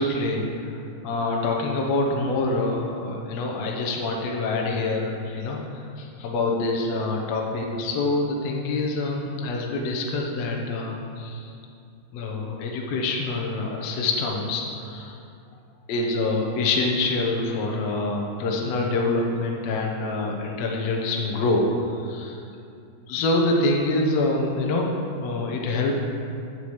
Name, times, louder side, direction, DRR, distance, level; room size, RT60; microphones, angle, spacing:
voice 1, 0.0-11.5 12.1-15.2 15.9-22.4 23.1-24.9 25.2-26.0, left 2 dB, 70° left, 0 dB, 1.7 m, -26 dB
15.5 x 5.9 x 3.2 m, 2.5 s
omnidirectional pair, 4.1 m